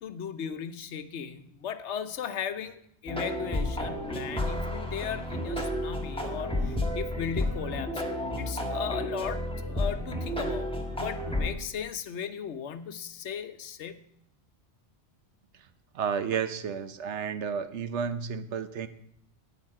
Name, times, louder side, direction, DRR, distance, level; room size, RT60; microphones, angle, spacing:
voice 1, 0.0-8.0 8.4-14.1, left 7 dB, 85° left, 11 dB, 1.1 m, -37 dB
sound 1, 3.1-11.5, left 1 dB, 5° left, 1.3 m, -31 dB
voice 2, 15.9-18.9, right 7 dB, 85° right, 12 dB, 1.1 m, -31 dB
12.0 x 9.1 x 4.8 m, 0.72 s
omnidirectional pair, 1.2 m